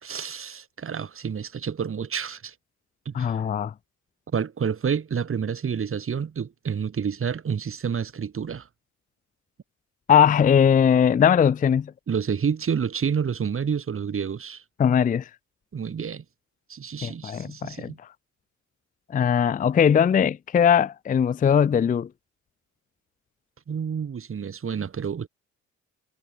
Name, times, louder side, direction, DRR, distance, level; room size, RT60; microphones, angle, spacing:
voice 1, 0.0-2.5 3.1-3.4 4.3-8.7 12.1-14.6 15.7-16.2 16.7-18.0 23.7-25.3, right 7 dB, 45° right, 4.4 m, -29 dB
voice 2, 3.1-3.7 10.1-11.9 14.8-15.3 17.0-17.9 19.1-22.1, left 8 dB, 30° left, 0.4 m, -20 dB
cardioid pair, 90°, 30 cm